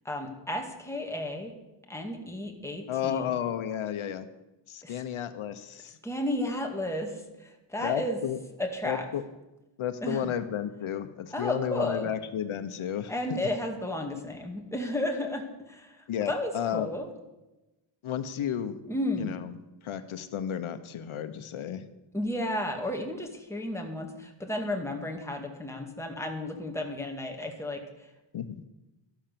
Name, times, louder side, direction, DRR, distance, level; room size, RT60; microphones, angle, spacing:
voice 1, 0.0-1.5 1.9-3.3 4.8-5.0 6.0-8.2 8.6-9.1 10.0-10.4 11.3-12.1 13.1-17.1 18.9-19.4 22.1-28.1, left 1 dB, 5° left, 2 dB, 2.1 m, -33 dB
voice 2, 2.9-4.3 4.7-6.0 7.8-8.4 8.8-9.2 9.8-13.1 16.1-16.9 18.0-18.8 19.2-19.5 19.8-21.8 28.3-28.5, left 9 dB, 90° left, 10 dB, 1.1 m, -32 dB
13.0 x 11.5 x 6.9 m, 1.0 s
wide cardioid pair, 135°, 47 cm